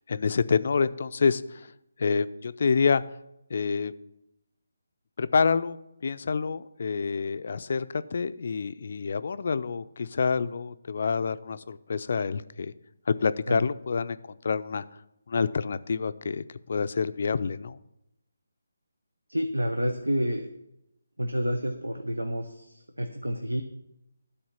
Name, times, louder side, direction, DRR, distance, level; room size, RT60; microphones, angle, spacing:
voice 1, 0.0-1.7 2.0-3.0 3.5-3.9 5.2-5.8 6.0-12.7 13.1-14.2 14.4-14.8 15.3-17.8, left 5 dB, 50° left, 14 dB, 0.4 m, -27 dB
voice 2, 19.3-20.5 21.2-23.6, equal, 85° right, 5 dB, 0.8 m, -29 dB
12.0 x 4.3 x 5.6 m, 0.85 s
figure-of-eight pair, 150°, 0 cm